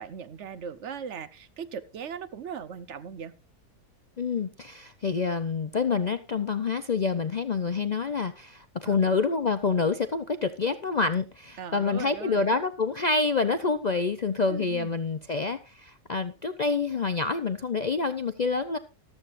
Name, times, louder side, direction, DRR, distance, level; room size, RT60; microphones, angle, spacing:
voice 1, 0.0-3.3 8.8-9.0 11.6-12.6 14.5-15.0, right 7 dB, 55° right, 1.0 m, -39 dB
voice 2, 4.2-18.8, left 4 dB, 65° left, 0.4 m, -27 dB
14.5 x 13.0 x 2.5 m
omnidirectional pair, 1.6 m